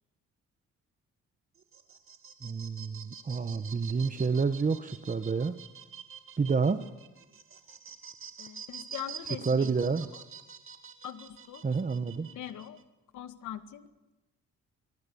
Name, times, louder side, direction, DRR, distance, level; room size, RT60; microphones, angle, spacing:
sound 1, 1.6-12.8, right 7 dB, 45° right, 2.5 m, -47 dB
voice 1, 2.4-5.5 6.4-6.8 9.5-10.1 11.6-12.3, right 5 dB, 25° right, 10 dB, 1.3 m, -29 dB
voice 2, 8.4-9.7 11.0-11.6 12.2-12.8 13.1-13.9, left 11 dB, 80° left, 9 dB, 2.0 m, -42 dB
26.0 x 23.5 x 7.1 m, 1.0 s
cardioid pair, 90°, 30 cm